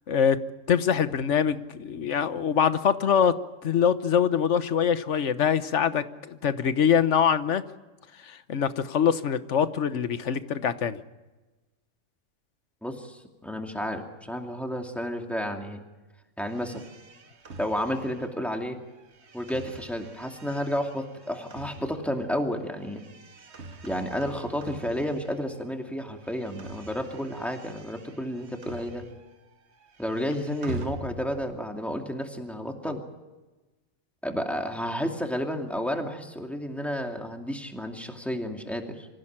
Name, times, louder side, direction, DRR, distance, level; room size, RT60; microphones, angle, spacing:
voice 1, 0.1-0.4 0.7-3.3 3.6-7.6 8.3-11.0, left 7 dB, 70° left, 12 dB, 1.3 m, -24 dB
voice 2, 12.8-15.8 16.4-16.9 17.6-18.8 19.3-23.0 23.8-29.0 30.0-33.0 34.2-39.1, equal, ahead, 3 dB, 2.5 m, -31 dB
sound 1, 16.4-25.7 26.0-29.4 29.7-31.6, right 2 dB, 60° right, 1.5 m, -44 dB
25.5 x 15.5 x 8.8 m, 1.2 s
omnidirectional pair, 1.3 m